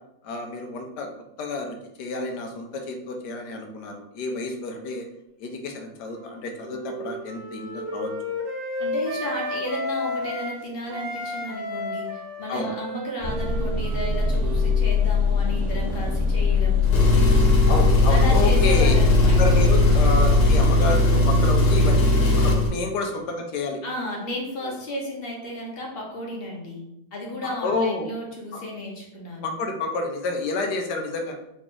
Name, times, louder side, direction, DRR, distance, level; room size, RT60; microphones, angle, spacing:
voice 1, 0.2-1.1 1.4-5.0 5.4-8.3 12.5-12.7 17.7-18.9 19.3-23.8 24.6-24.7 27.6-28.1 28.5-28.6 29.4-31.3, left 3 dB, 70° left, 3 dB, 1.1 m, -29 dB
Wind instrument woodwind instrument, 6.0-10.5 10.9-15.4, left 1 dB, 80° right, 1.7 m, -33 dB
voice 2, 8.8-16.8 18.1-19.6 23.8-26.8 27.1-29.5, left 1 dB, 40° left, -2 dB, 0.9 m, -33 dB
sound 1, 13.2-20.6, left 6 dB, 50° right, 0.9 m, -22 dB
Engine, 16.8-22.7, left 1 dB, 90° left, 1.6 m, -19 dB
3.9 x 3.1 x 3.7 m, 0.83 s
omnidirectional pair, 2.1 m